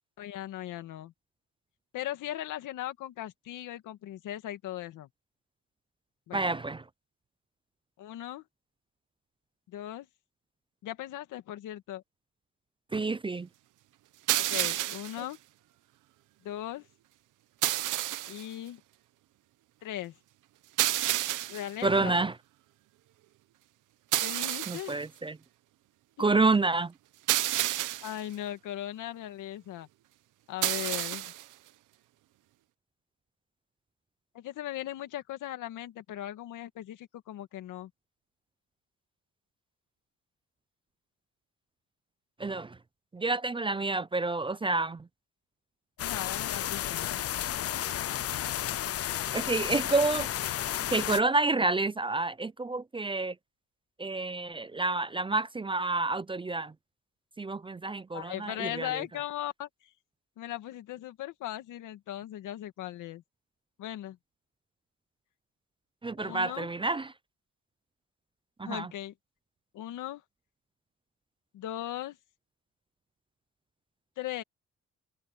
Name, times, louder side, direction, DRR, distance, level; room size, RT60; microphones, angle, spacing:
voice 1, 0.2-1.1 1.9-5.1 6.3-6.5 8.0-8.4 9.7-10.1 10.8-12.0 14.4-15.4 16.4-16.9 18.3-18.8 19.8-20.2 21.5-22.2 24.2-25.0 26.2-26.4 28.0-29.9 30.5-31.3 34.3-37.9 46.0-47.1 58.1-59.9 60.4-63.2 63.8-64.2 66.2-66.7 68.6-69.1 69.7-70.2 71.5-72.2 74.2-74.4, left 13 dB, 85° left, 2.2 m, -38 dB
voice 2, 6.3-6.8 12.9-13.5 21.8-22.3 24.7-25.4 26.2-26.9 42.4-42.8 43.1-45.1 49.3-50.3 50.9-53.3 54.0-56.7 57.4-59.0 66.0-67.1 68.6-68.9, right 3 dB, 15° right, 0.5 m, -29 dB
sound 1, 14.3-15.2 17.6-18.4 20.8-21.7 24.1-24.9 27.3-28.2 30.6-31.4, right 15 dB, 85° right, 1.1 m, -29 dB
sound 2, 46.0-51.2, left 11 dB, 50° left, 0.6 m, -32 dB
cardioid pair, 90°, 30 cm